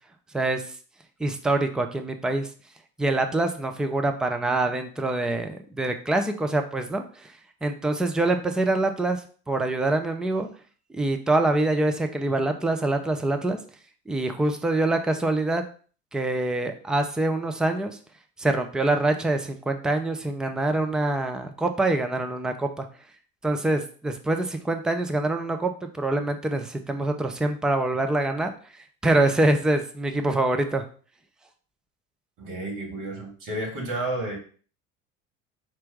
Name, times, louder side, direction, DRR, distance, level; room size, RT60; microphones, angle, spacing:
voice 1, 1.2-2.5 3.0-7.3 7.6-9.2 9.5-10.5 10.9-13.6 14.1-15.6 16.1-18.0 18.4-22.9 23.4-28.5 29.0-30.8, right 2 dB, ahead, 6 dB, 0.4 m, -25 dB
voice 2, 32.4-34.4, right 1 dB, 55° right, 0 dB, 2.2 m, -31 dB
4.4 x 2.6 x 4.6 m, 0.41 s
hypercardioid pair, 70°, 39 cm